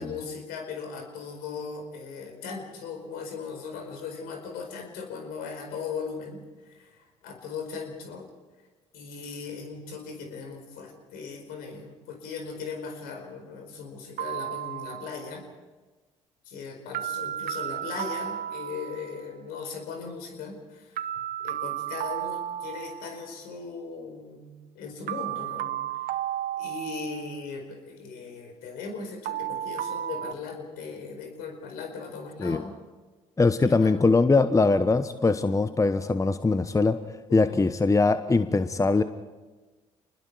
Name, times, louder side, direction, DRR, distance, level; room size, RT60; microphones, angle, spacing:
voice 1, 0.0-6.4 6.6-8.3 8.9-15.5 16.5-20.9 21.4-26.0 26.6-32.7 33.6-34.0 37.3-37.6, left 5 dB, 70° left, 4 dB, 4.7 m, -38 dB
sound 1, 14.2-15.3 16.9-19.3 21.0-23.3 25.1-27.4 29.2-30.3, right 11 dB, 60° right, 0.8 m, -33 dB
voice 2, 33.4-37.0 37.3-39.0, left 3 dB, 20° left, 12 dB, 1.0 m, -22 dB
28.5 x 20.5 x 4.8 m, 1.3 s
hypercardioid pair, 50°, 16 cm